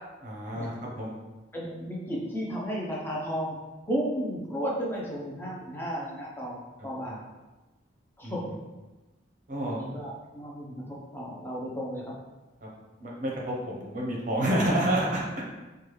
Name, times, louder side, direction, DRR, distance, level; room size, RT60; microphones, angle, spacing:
voice 1, 0.2-1.1 8.2-8.5 9.5-9.8 12.6-12.7 13.0-15.2, right 1 dB, 40° right, -3 dB, 0.6 m, -29 dB
voice 2, 1.5-3.6 3.9-7.2 8.2-8.5 9.7-12.2, equal, 10° left, -4 dB, 0.5 m, -33 dB
3.2 x 2.3 x 3.1 m, 1.1 s
head